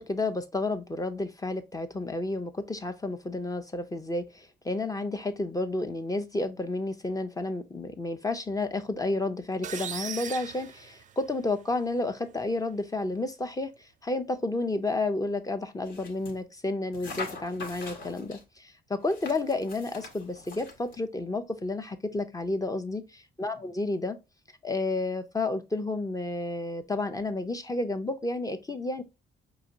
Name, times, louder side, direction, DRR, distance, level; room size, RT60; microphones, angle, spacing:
voice 1, 0.0-24.2 24.6-29.0, left 2 dB, 15° left, 0.5 m, -31 dB
sound 1, 9.6-11.6, right 7 dB, 40° right, 0.4 m, -38 dB
sound 2, 15.8-16.4 16.9-18.4 19.0-21.0, left 3 dB, 70° left, 1.3 m, -42 dB
4.7 x 3.0 x 2.6 m
cardioid pair, 90°, 20 cm